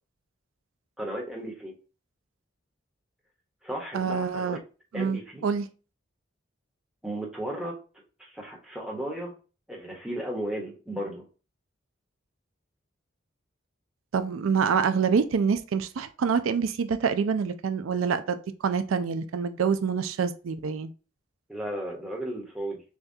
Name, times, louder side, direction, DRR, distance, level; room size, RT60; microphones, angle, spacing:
voice 1, 1.0-1.7 3.6-4.6 4.9-5.5 7.0-7.7 8.2-9.3 9.7-11.2 21.5-22.8, right 1 dB, 5° right, 1.0 m, -34 dB
voice 2, 3.9-4.6 4.9-5.7 14.1-18.4 18.6-20.9, right 6 dB, 85° right, 0.4 m, -26 dB
6.9 x 2.3 x 2.7 m
head